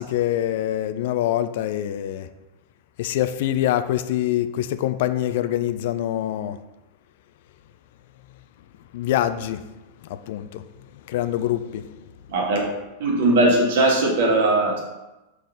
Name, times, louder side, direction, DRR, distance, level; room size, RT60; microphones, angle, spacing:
voice 1, 0.0-2.3 3.0-6.6 8.9-9.6 10.1-10.6 11.1-11.8, left 12 dB, 50° left, 12 dB, 0.4 m, -24 dB
voice 2, 13.0-14.8, right 2 dB, 55° right, -1 dB, 1.8 m, -19 dB
6.3 x 5.4 x 3.9 m, 1.0 s
figure-of-eight pair, 90°, 0 cm